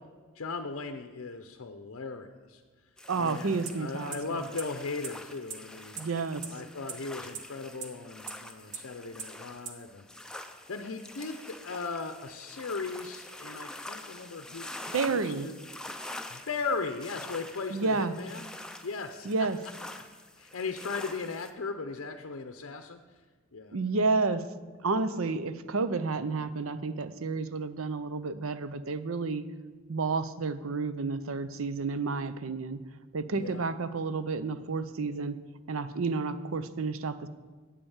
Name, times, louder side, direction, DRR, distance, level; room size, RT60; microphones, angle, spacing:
voice 1, 0.3-2.6 3.2-6.0 6.5-10.1 10.7-14.7 15.1-15.5 16.3-18.5 18.8-19.3 20.4-23.0 23.5-23.8 33.3-33.7, left 4 dB, 65° left, 6 dB, 0.6 m, -37 dB
sound 1, 3.0-21.5, left 1 dB, 5° left, 0.5 m, -45 dB
voice 2, 3.1-4.4 6.0-6.4 14.9-15.5 17.7-18.1 19.2-19.6 23.7-24.4 24.8-29.4 29.9-32.8 33.1-35.4 35.7-37.3, right 4 dB, 70° right, 13 dB, 0.6 m, -30 dB
sound 2, 3.7-3.8 4.1-4.2 4.6-4.7 5.0-5.1 5.5-5.6 6.0-6.1 6.4-6.5 6.9-7.0 7.3-7.4 7.8-7.9 8.3-8.4 8.7-8.8 9.2-9.3 9.7-9.8, right 7 dB, 85° right, 1.1 m, -36 dB
8.7 x 8.6 x 7.2 m, 1.4 s
head